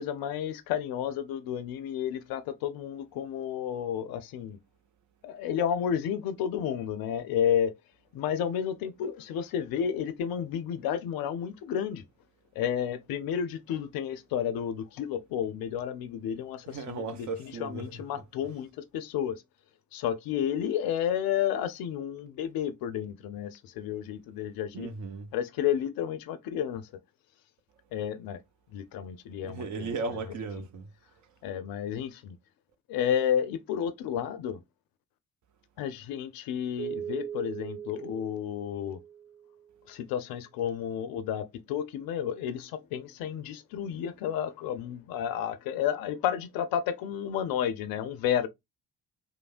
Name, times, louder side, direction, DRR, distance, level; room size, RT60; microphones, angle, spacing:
voice 1, 0.0-4.6 5.2-7.7 8.1-12.0 12.6-19.4 19.9-24.9 25.3-26.9 27.9-28.4 28.7-30.2 30.6-30.7 31.4-32.4 32.9-34.6 35.8-39.0 39.9-48.5, left 9 dB, 55° left, 0.5 m, -31 dB
voice 2, 16.7-18.2 24.7-25.3 29.4-30.9, right 4 dB, 40° right, 0.7 m, -36 dB
Keyboard (musical), 36.8-39.7, right 8 dB, 60° right, 1.0 m, -40 dB
3.2 x 2.1 x 2.4 m
figure-of-eight pair, 45°, 44 cm